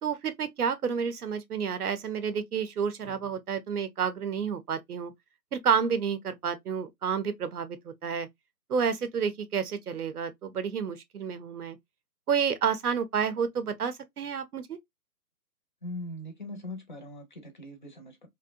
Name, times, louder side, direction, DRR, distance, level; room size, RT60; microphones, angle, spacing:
voice 1, 0.0-5.1 5.5-8.3 8.7-11.8 12.3-14.8, right 7 dB, 70° right, 0.6 m, -30 dB
voice 2, 15.8-18.3, left 1 dB, 30° left, 0.5 m, -41 dB
2.7 x 2.1 x 2.4 m
figure-of-eight pair, 140°, 48 cm